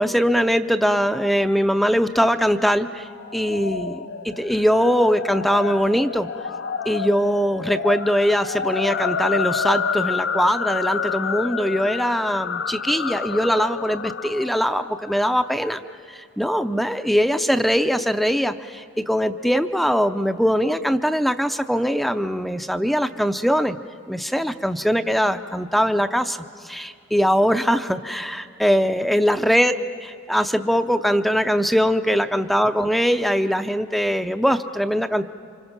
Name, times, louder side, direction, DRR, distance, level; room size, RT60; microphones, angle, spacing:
voice 1, 0.0-6.3 6.9-15.8 16.1-23.8 24.1-26.4 26.6-29.7 30.0-35.3, equal, ahead, 8 dB, 0.5 m, -21 dB
sound 1, 3.2-15.6, left 6 dB, 60° left, 0.6 m, -29 dB
29.0 x 25.5 x 5.9 m, 2.4 s
head